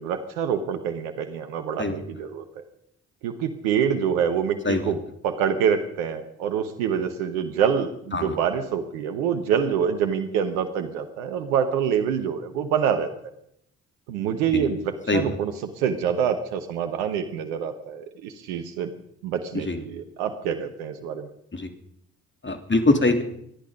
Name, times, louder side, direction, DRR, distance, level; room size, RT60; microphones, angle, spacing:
voice 1, 0.0-2.6 3.2-5.0 5.2-13.1 14.1-18.9 19.2-21.3, right 7 dB, 90° right, 8 dB, 1.1 m, -26 dB
voice 2, 22.4-23.2, left 2 dB, 30° left, 6 dB, 3.2 m, -22 dB
25.5 x 10.5 x 5.3 m, 0.73 s
hypercardioid pair, 40°, 39 cm